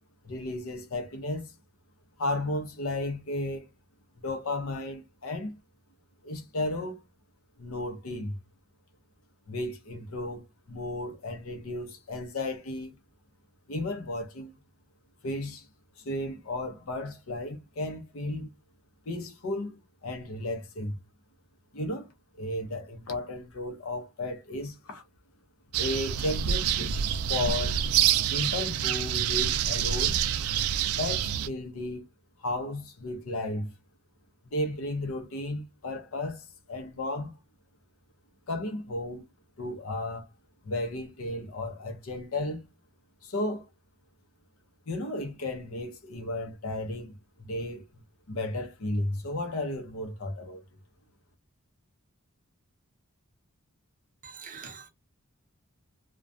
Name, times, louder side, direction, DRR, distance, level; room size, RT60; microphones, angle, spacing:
voice 1, 0.2-1.5 2.2-3.6 4.2-5.5 6.2-7.0 7.6-8.4 9.5-10.4 10.7-12.9 13.7-14.5 15.2-15.7 16.0-18.5 19.1-21.0 21.7-22.1 22.4-25.0 25.8-27.0 27.3-27.8 28.3-30.2 31.0-32.0 32.4-33.7 34.5-37.3 38.5-39.3 39.6-40.3 40.6-42.7 43.2-43.7 44.9-47.8 48.3-50.6, left 1 dB, 75° left, 0.6 m, -34 dB
sound 1, 25.7-31.5, right 9 dB, 85° right, 0.3 m, -27 dB
voice 2, 54.2-54.9, right 6 dB, 40° right, 0.6 m, -44 dB
2.3 x 2.1 x 2.5 m
head